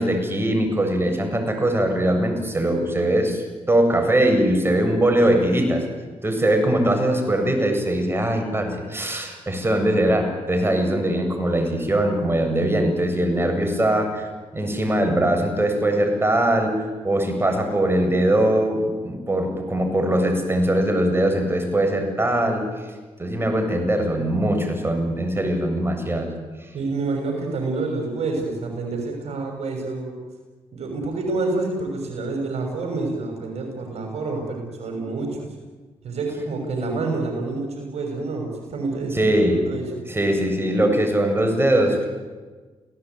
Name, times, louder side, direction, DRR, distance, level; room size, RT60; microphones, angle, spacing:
voice 1, 0.0-5.9 6.2-14.3 14.5-16.8 17.0-22.6 23.2-26.3 39.1-39.6 40.1-42.1, right 1 dB, 20° right, 4 dB, 7.8 m, -21 dB
voice 2, 26.7-30.1 30.7-35.5 36.0-39.3 39.7-40.0, right 3 dB, 65° right, 2 dB, 6.2 m, -28 dB
29.0 x 17.5 x 9.5 m, 1.3 s
cardioid pair, 65°, 12 cm